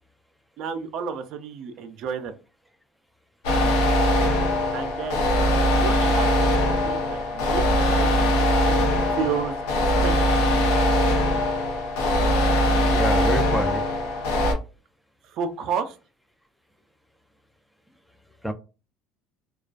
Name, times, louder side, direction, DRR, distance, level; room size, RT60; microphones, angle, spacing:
voice 1, 0.6-2.4 4.7-5.2 5.7-8.1 9.1-9.5 10.0-10.3 15.2-16.0, right 6 dB, 65° right, 8 dB, 0.4 m, -31 dB
sound 1, 3.4-14.5, left 1 dB, 85° left, 0.7 m, -21 dB
voice 2, 12.7-13.8 18.4-18.5, equal, ahead, 7 dB, 0.4 m, -28 dB
2.3 x 2.2 x 2.3 m, 0.32 s
supercardioid pair, 85°, 0 cm